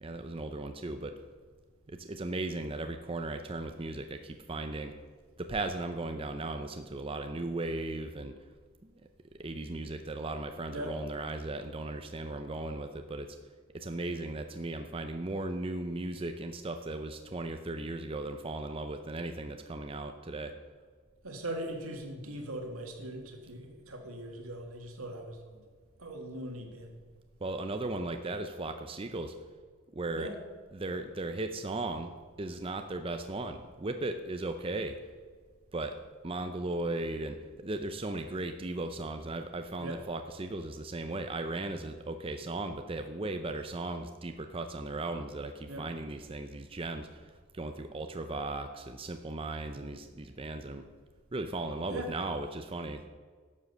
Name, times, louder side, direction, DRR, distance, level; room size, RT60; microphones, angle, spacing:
voice 1, 0.0-1.2 1.9-4.9 5.4-8.3 8.8-8.9 9.4-13.4 13.7-20.5 27.4-29.3 29.9-30.4 30.7-35.0 35.7-35.9 36.2-50.9 51.3-53.0, right 2 dB, 25° right, 7 dB, 0.5 m, -37 dB
voice 2, 21.2-25.4 26.0-27.0 30.2-30.3 39.8-40.0 45.7-45.9 49.7-49.8 51.9-52.1, right 1 dB, 80° right, 3 dB, 2.0 m, -40 dB
11.5 x 7.4 x 6.7 m, 1.5 s
head